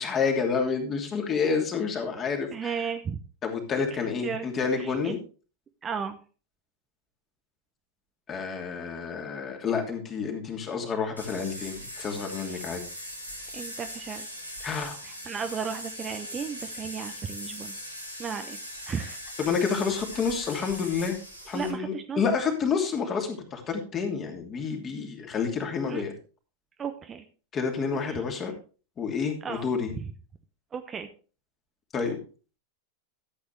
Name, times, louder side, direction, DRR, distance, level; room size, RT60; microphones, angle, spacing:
voice 1, 0.0-2.7 3.4-5.2 8.3-12.8 14.6-15.0 19.4-21.2 21.5-26.1 27.5-28.5 29.0-29.9 31.9-32.2, left 5 dB, 25° left, 3 dB, 2.8 m, -29 dB
voice 2, 2.5-3.2 4.2-4.5 4.8-5.1 5.8-6.2 12.5-12.6 13.5-14.3 15.0-17.7 18.2-18.6 18.9-19.2 21.5-22.2 25.9-26.0 26.8-27.2 28.1-28.2 29.4-29.6 29.9-30.1 30.7-31.1, right 6 dB, 20° right, 7 dB, 0.9 m, -34 dB
sound 1, 11.2-21.7, equal, 90° left, 2.8 m, -40 dB
13.5 x 8.4 x 3.3 m, 0.36 s
figure-of-eight pair, 90°, 0 cm